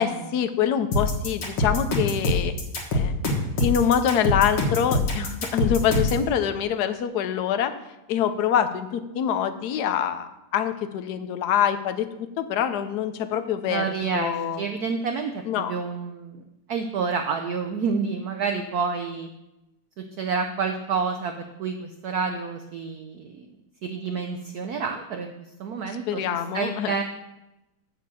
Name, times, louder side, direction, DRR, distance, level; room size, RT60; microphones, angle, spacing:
voice 1, 0.0-2.5 2.9-3.1 3.6-7.7 8.1-13.8 14.1-14.6 15.5-15.7 26.1-27.0, left 9 dB, 65° left, 9 dB, 1.0 m, -25 dB
sound 1, 0.9-6.2, left 2 dB, 85° left, 2.4 m, -24 dB
voice 2, 13.7-16.4 16.7-19.3 20.0-23.5 23.8-25.3 25.6-27.0, right 5 dB, 70° right, 6 dB, 0.9 m, -29 dB
6.9 x 6.5 x 7.6 m, 0.95 s
omnidirectional pair, 2.3 m